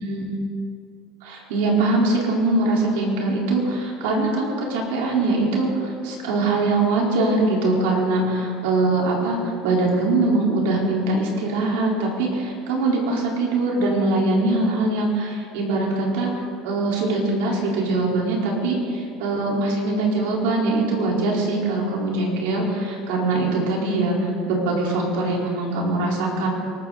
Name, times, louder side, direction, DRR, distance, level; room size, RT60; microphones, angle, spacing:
voice 1, 1.2-16.3 16.6-26.5, right 2 dB, 85° right, -2 dB, 4.2 m, -22 dB
23.5 x 14.0 x 4.1 m, 2.3 s
supercardioid pair, 120°, 0 cm